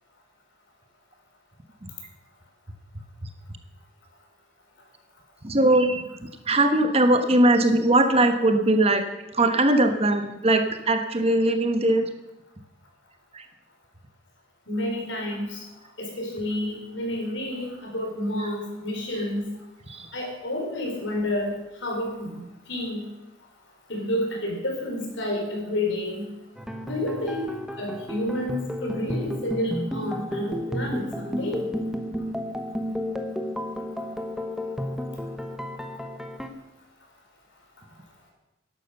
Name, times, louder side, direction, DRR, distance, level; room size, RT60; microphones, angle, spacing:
voice 1, 5.4-6.0 6.5-9.0 9.3-12.1 13.3-13.4 19.9-20.0, right 1 dB, 30° right, 7 dB, 1.2 m, -20 dB
voice 2, 14.7-15.6 16.0-19.4 20.1-21.5 21.8-22.3 22.7-23.0 23.9-26.2 26.8-27.5 27.8-31.7, left 1 dB, 70° left, 0 dB, 4.7 m, -29 dB
sound 1, 26.6-36.5, equal, 5° right, 1.0 m, -32 dB
12.5 x 11.5 x 6.6 m, 0.96 s
head